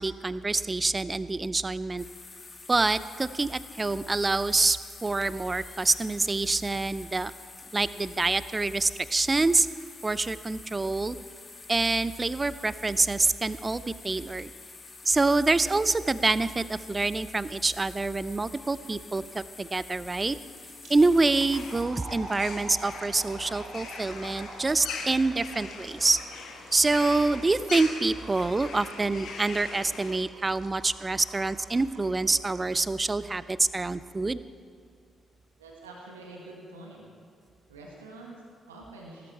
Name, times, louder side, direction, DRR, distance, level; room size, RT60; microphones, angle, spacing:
voice 1, 0.0-2.0 2.7-7.3 7.7-9.7 10.0-11.2 11.7-14.5 15.1-20.4 20.9-26.2 26.7-34.4, right 3 dB, 25° right, 16 dB, 0.5 m, -26 dB
sound 1, 2.0-21.8, left 4 dB, 35° left, 1.7 m, -48 dB
sound 2, 20.2-32.8, right 3 dB, 55° right, 2.1 m, -48 dB
sound 3, 21.5-30.2, left 5 dB, 60° left, 1.4 m, -41 dB
voice 2, 35.6-37.1 37.7-39.3, right 2 dB, 80° right, -1 dB, 1.7 m, -46 dB
18.0 x 13.0 x 4.5 m, 2.3 s
figure-of-eight pair, 40°, 0 cm